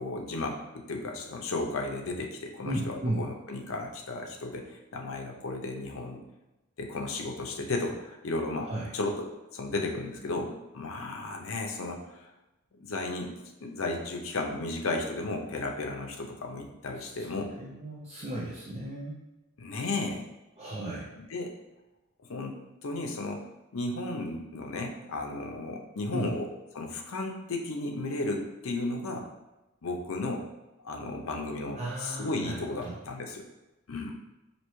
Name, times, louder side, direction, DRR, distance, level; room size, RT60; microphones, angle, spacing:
voice 1, 0.0-6.2 6.8-12.3 12.8-13.3 13.6-17.5 19.6-20.2 21.1-21.5 22.3-23.5 23.7-26.5 26.7-29.3 29.8-30.5 30.8-33.4 33.9-34.1, left 2 dB, 70° left, 2 dB, 0.6 m, -34 dB
voice 2, 2.6-3.3 8.6-8.9 17.0-19.2 20.6-21.1 26.1-26.3 31.8-33.0, right 1 dB, 30° right, -6 dB, 0.5 m, -35 dB
4.3 x 2.8 x 3.0 m, 1.0 s
head